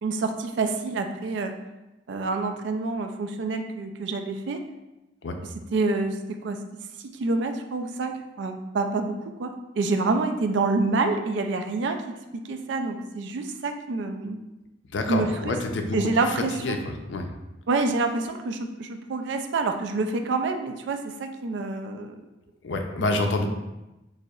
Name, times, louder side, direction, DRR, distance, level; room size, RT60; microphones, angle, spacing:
voice 1, 0.0-1.5 2.1-4.6 5.7-6.6 7.0-12.0 12.3-14.4 15.1-15.6 15.9-16.8 17.7-22.1 23.0-23.5, right 3 dB, 65° right, 6 dB, 0.4 m, -27 dB
voice 2, 14.9-16.8 17.1-17.3 22.6-23.5, left 2 dB, 70° left, 4 dB, 0.5 m, -27 dB
6.2 x 2.1 x 2.3 m, 0.98 s
head